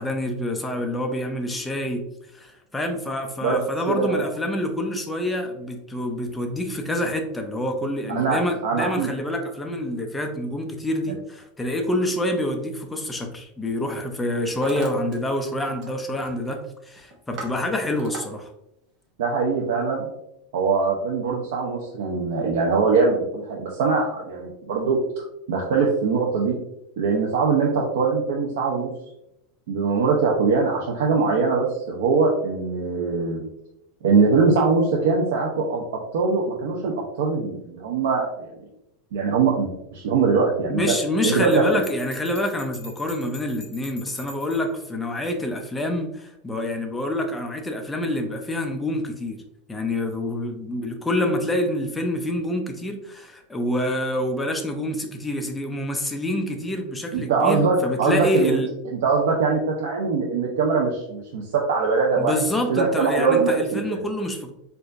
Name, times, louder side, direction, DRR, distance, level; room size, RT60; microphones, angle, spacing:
voice 1, 0.0-2.0 2.3-18.5 40.7-49.4 49.7-58.7 62.2-64.5, left 1 dB, 10° left, 4 dB, 0.4 m, -27 dB
voice 2, 3.9-4.2 8.2-9.1 19.2-20.1 20.5-25.0 25.5-26.6 27.0-28.9 29.7-33.4 34.0-38.5 39.1-40.8 41.2-41.6 57.1-58.6 59.0-62.3 62.7-64.0, right 4 dB, 75° right, -1 dB, 0.6 m, -22 dB
Hammer, 12.6-12.9 13.6-13.9 14.2-15.2 15.4-15.9 16.2-16.5 17.0-18.2, right 2 dB, 40° right, 0.8 m, -38 dB
Bell, 41.5-44.7, equal, 40° left, 1.4 m, -43 dB
4.5 x 2.5 x 2.5 m, 0.83 s
supercardioid pair, 150°, 0 cm